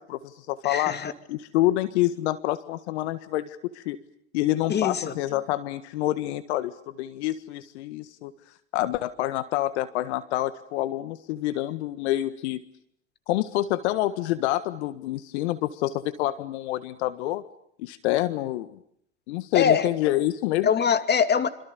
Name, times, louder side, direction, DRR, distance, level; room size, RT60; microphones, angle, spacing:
voice 1, 0.0-0.9 1.3-4.0 4.3-8.3 8.7-12.6 13.3-17.4 17.8-18.7 19.3-20.7, left 15 dB, 65° left, 12 dB, 1.7 m, -27 dB
voice 2, 0.6-1.1 4.7-5.1 19.5-19.9 20.6-21.5, left 7 dB, 30° left, 10 dB, 2.6 m, -23 dB
27.5 x 26.5 x 6.9 m, 0.70 s
hypercardioid pair, 85°, 35 cm